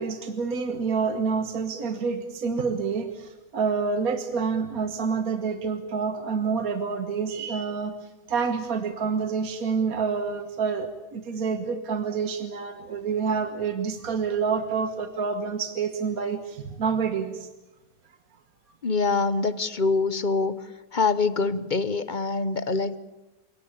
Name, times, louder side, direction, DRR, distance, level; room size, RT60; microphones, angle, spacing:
voice 1, 0.0-17.5, right 5 dB, 60° right, 8 dB, 1.7 m, -28 dB
voice 2, 18.8-20.6 20.9-23.0, left 4 dB, 35° left, 14 dB, 0.8 m, -24 dB
28.5 x 18.0 x 8.6 m, 1.0 s
omnidirectional pair, 1.8 m